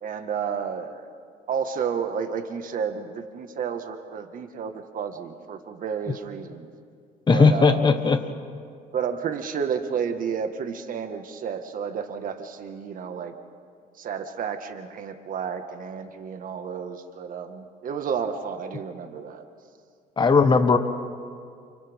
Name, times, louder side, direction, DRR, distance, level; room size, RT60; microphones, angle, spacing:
voice 1, 0.0-1.0 1.5-6.7 7.3-7.9 8.9-13.3 14.0-19.4, right 7 dB, 55° right, 7 dB, 1.7 m, -31 dB
voice 2, 7.3-8.2 20.2-20.8, left 4 dB, 25° left, 7 dB, 1.4 m, -17 dB
29.5 x 29.0 x 3.7 m, 2.2 s
cardioid pair, 110°, 17 cm